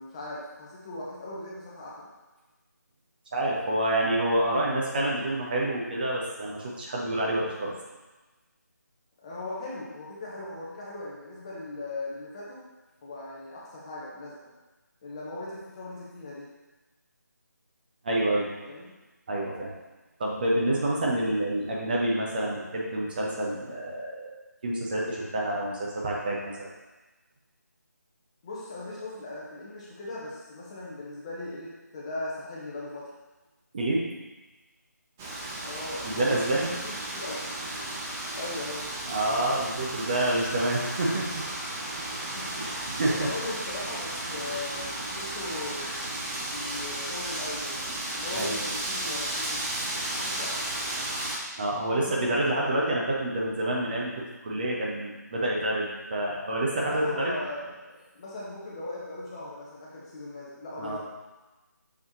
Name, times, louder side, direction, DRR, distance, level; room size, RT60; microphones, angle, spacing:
voice 1, 0.0-2.1 9.2-12.6 13.0-14.5 15.0-16.5 18.6-18.9 28.4-33.1 35.6-37.4 38.3-38.9 42.3-42.7 43.1-45.9 46.5-49.6 50.1-50.6 51.9-52.9 56.8-61.0, left 2 dB, 20° left, -6 dB, 1.0 m, -39 dB
voice 2, 3.3-7.7 18.0-18.5 19.3-19.7 20.2-24.3 24.6-26.7 33.7-34.0 36.0-36.7 39.0-41.4 42.6-43.3 48.3-48.8 51.6-57.3 60.8-61.0, right 1 dB, 30° right, -3 dB, 1.0 m, -28 dB
Wind, 35.2-51.4, right 1 dB, 10° right, 0.4 m, -34 dB
6.5 x 5.4 x 3.0 m, 1.1 s
figure-of-eight pair, 155°, 10 cm